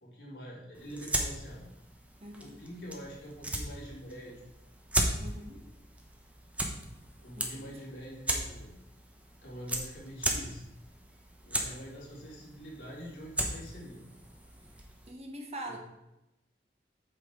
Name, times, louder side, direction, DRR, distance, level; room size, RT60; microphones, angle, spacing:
voice 1, 0.0-1.6 2.4-4.4 7.2-8.7 9.4-10.6 11.4-14.0 15.6-15.8, equal, 75° left, -5 dB, 3.2 m, -45 dB
sound 1, 0.7-15.1, right 1 dB, 10° right, 0.9 m, -37 dB
voice 2, 2.2-2.6 5.2-5.6 7.4-7.8 15.1-15.8, right 1 dB, 35° right, 2 dB, 1.3 m, -43 dB
8.4 x 6.7 x 3.8 m, 0.91 s
head